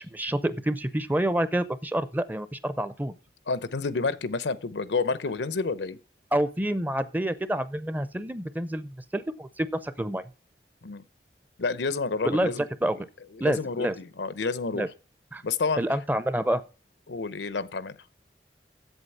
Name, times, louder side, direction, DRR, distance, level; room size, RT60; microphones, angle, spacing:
voice 1, 0.0-3.1 6.3-10.3 12.2-12.5 12.8-13.1 13.4-14.0 14.7-14.9 15.3-15.4 15.8-16.6, right 1 dB, 10° right, 0.5 m, -28 dB
voice 2, 3.5-6.0 10.8-11.0 11.6-12.7 13.3-14.9 15.4-15.8 17.1-18.0, left 4 dB, 90° left, 0.7 m, -29 dB
8.1 x 7.7 x 5.6 m
head